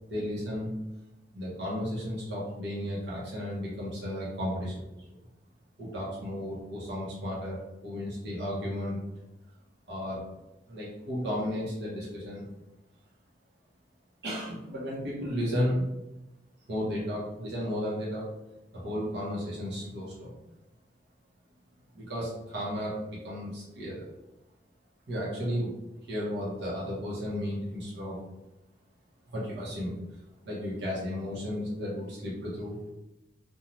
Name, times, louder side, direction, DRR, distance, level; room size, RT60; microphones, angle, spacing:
voice 1, 0.1-0.7 1.3-4.8 5.8-9.0 9.9-10.2 10.7-12.5 14.2-15.9 16.7-18.3 18.7-20.4 21.9-24.0 25.1-25.7 26.1-28.2 29.3-30.0 30.4-32.8, equal, 70° right, -6 dB, 0.8 m, -33 dB
2.6 x 2.3 x 3.0 m, 0.96 s
head